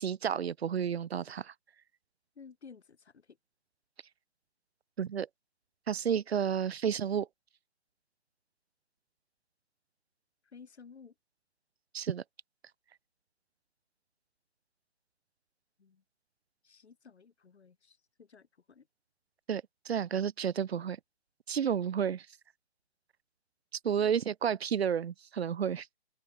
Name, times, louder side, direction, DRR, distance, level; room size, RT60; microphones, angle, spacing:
voice 1, 0.0-1.5 5.0-5.3 5.9-7.3 11.9-12.2 19.5-21.0 21.5-22.3 23.8-26.0, right 8 dB, 65° right, 0.8 m, -31 dB
voice 2, 2.3-3.4 10.4-11.1 15.8-16.0 16.6-18.9, left 5 dB, 70° left, 2.9 m, -55 dB
open air
figure-of-eight pair, 135°, 34 cm